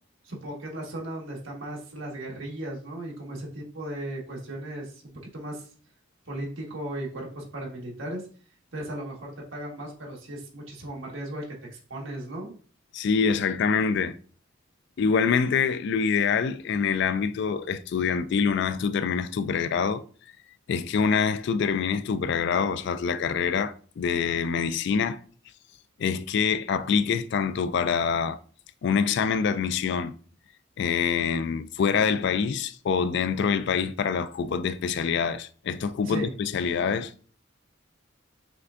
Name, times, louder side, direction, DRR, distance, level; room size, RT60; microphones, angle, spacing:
voice 1, 0.2-5.0 5.3-5.7 6.3-8.2 8.7-11.4 11.7-12.5 36.0-36.3, right 1 dB, 70° right, 1.5 m, -36 dB
voice 2, 12.9-14.2 15.0-20.0 20.7-25.2 26.0-28.4 28.8-30.1 30.8-37.1, left 6 dB, 55° left, 0.3 m, -25 dB
5.7 x 3.4 x 2.5 m
head